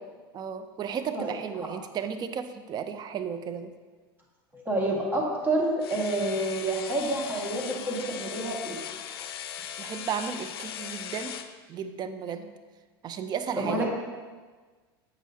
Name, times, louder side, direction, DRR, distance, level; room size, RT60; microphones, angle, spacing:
voice 1, 0.3-3.7 9.8-11.3 11.7-12.5 13.0-13.9, right 7 dB, 35° right, 9 dB, 0.5 m, -34 dB
voice 2, 4.5-8.8 13.6-13.9, right 1 dB, 15° right, -2 dB, 1.7 m, -28 dB
sound 1, 5.8-11.5, left 9 dB, 80° left, 0.4 m, -39 dB
8.0 x 6.3 x 2.8 m, 1.4 s
hypercardioid pair, 100°, 13 cm